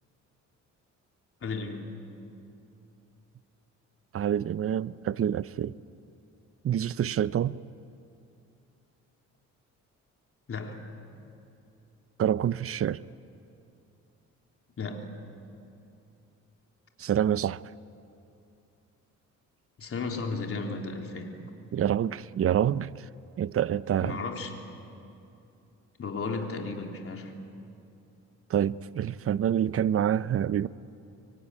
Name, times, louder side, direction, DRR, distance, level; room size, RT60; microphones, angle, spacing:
voice 1, 1.4-2.0 10.5-10.9 14.8-15.1 19.8-21.4 24.0-24.5 26.0-27.3, left 4 dB, 45° left, 3.8 m, -34 dB
voice 2, 4.1-5.7 6.6-7.6 12.2-13.0 17.0-17.6 21.7-23.1 23.4-24.2 28.5-30.7, right 10 dB, 50° right, 0.7 m, -27 dB
25.5 x 23.5 x 9.9 m
cardioid pair, 90°, 30 cm